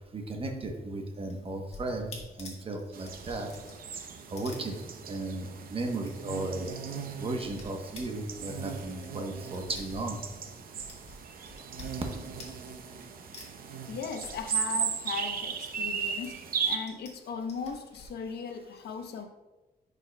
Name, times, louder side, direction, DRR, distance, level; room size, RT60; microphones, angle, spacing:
voice 1, 0.1-2.1 2.4-3.5 4.3-4.7 5.1-6.7 7.2-10.2, right 2 dB, 35° right, 3 dB, 0.9 m, -35 dB
sound 1, 1.1-5.3 5.6-5.7 5.9-6.7 7.0-10.5 10.8-13.0 13.3-15.9 16.2-17.1 17.4-18.1, left 2 dB, 40° left, 1.6 m, -49 dB
sound 2, 2.9-16.8, right 6 dB, 60° right, 0.7 m, -37 dB
voice 2, 13.9-19.2, left 6 dB, 80° left, 6 dB, 0.7 m, -38 dB
10.0 x 5.0 x 2.2 m, 1.1 s
wide cardioid pair, 140°, 17 cm